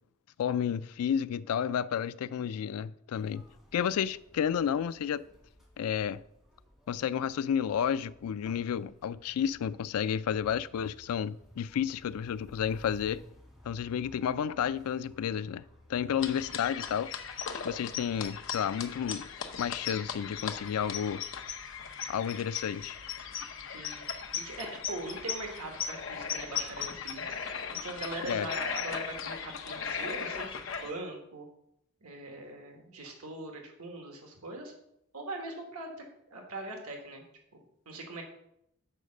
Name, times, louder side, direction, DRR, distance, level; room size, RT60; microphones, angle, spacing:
voice 1, 0.4-3.4 3.7-5.2 5.8-6.2 6.9-13.2 13.6-15.6 15.9-17.1 17.6-19.3 19.6-21.2 22.1-23.0 28.3-28.5, left 8 dB, 80° left, 0.3 m, -31 dB
sound 1, 3.1-16.3, left 1 dB, ahead, 2.1 m, -57 dB
sound 2, 16.2-30.9, left 7 dB, 55° left, 0.7 m, -38 dB
voice 2, 24.3-27.3 27.8-30.5 30.8-31.5 32.0-34.7 35.1-37.2 37.5-38.2, right 2 dB, 80° right, 1.4 m, -41 dB
6.6 x 4.8 x 6.4 m
head